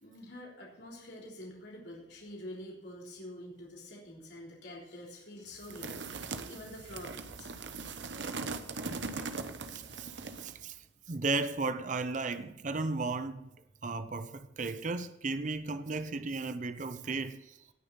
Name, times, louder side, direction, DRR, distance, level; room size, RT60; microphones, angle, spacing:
voice 1, 0.0-7.5, left 1 dB, 70° left, 3.6 m, -47 dB
sound 1, 5.6-10.7, right 4 dB, 80° right, 0.9 m, -40 dB
voice 2, 9.7-10.1 10.4-10.8 11.1-13.5 13.8-17.6, right 3 dB, 45° right, 0.6 m, -35 dB
18.0 x 6.7 x 4.0 m
head